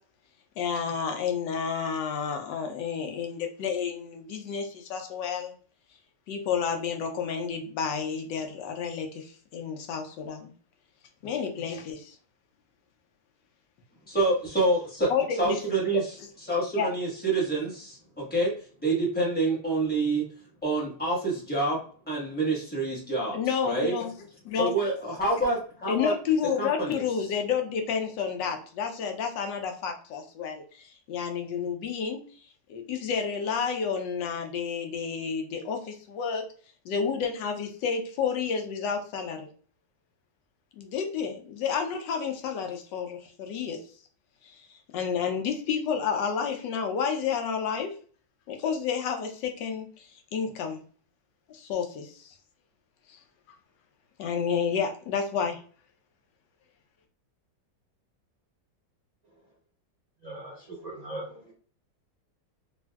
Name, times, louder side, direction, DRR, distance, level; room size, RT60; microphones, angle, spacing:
voice 1, 0.6-5.5 6.3-10.5 11.2-12.1 15.1-15.6 15.9-16.0 16.7-16.9 23.3-24.1 24.4-24.7 25.9-32.2 32.7-36.4 36.8-39.5 40.8-43.8 44.9-47.9 48.5-50.8 51.5-52.3 54.2-55.6, left 6 dB, 80° left, 4 dB, 1.3 m, -30 dB
voice 2, 14.1-15.1 15.4-16.0 16.5-18.5 18.8-20.2 20.6-21.8 22.1-23.4 23.6-23.9 24.5-26.1 26.6-27.0, right 2 dB, 5° left, -4 dB, 0.8 m, -27 dB
voice 3, 60.2-61.5, right 1 dB, 65° right, -4 dB, 0.4 m, -40 dB
3.4 x 2.5 x 2.2 m, 0.42 s
omnidirectional pair, 1.9 m